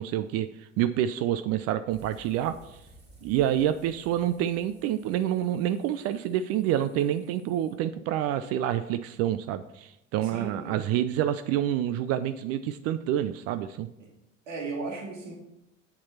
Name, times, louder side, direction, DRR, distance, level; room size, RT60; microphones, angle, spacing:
voice 1, 0.0-2.8 3.2-13.9, right 11 dB, 40° right, 12 dB, 0.4 m, -28 dB
sound 1, 1.9-7.8, right 2 dB, 25° right, 2.9 m, -55 dB
voice 2, 10.2-10.8 14.0-14.1 14.5-15.3, right 3 dB, 70° right, 0 dB, 2.0 m, -36 dB
8.2 x 7.2 x 4.2 m, 0.88 s
figure-of-eight pair, 60°, 39 cm